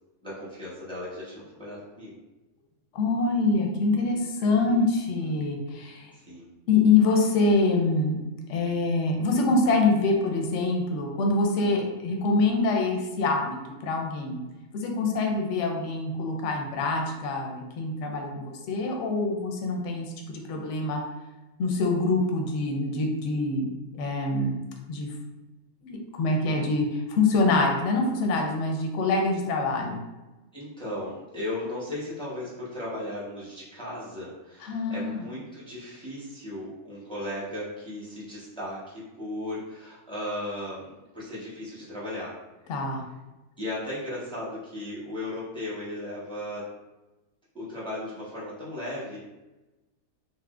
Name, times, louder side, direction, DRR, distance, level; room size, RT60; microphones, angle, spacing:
voice 1, 0.2-2.2 4.7-5.3 6.1-6.5 27.7-27.8 30.5-42.3 43.6-46.6 47.5-49.2, left 1 dB, 5° left, -8 dB, 0.5 m, -36 dB
voice 2, 2.9-6.1 6.7-8.2 8.5-14.4 14.7-21.0 21.6-24.6 24.9-25.1 25.8-30.0 34.6-35.2 42.7-43.0, left 3 dB, 65° left, 2 dB, 0.8 m, -25 dB
4.2 x 2.0 x 2.4 m, 1.1 s
omnidirectional pair, 1.6 m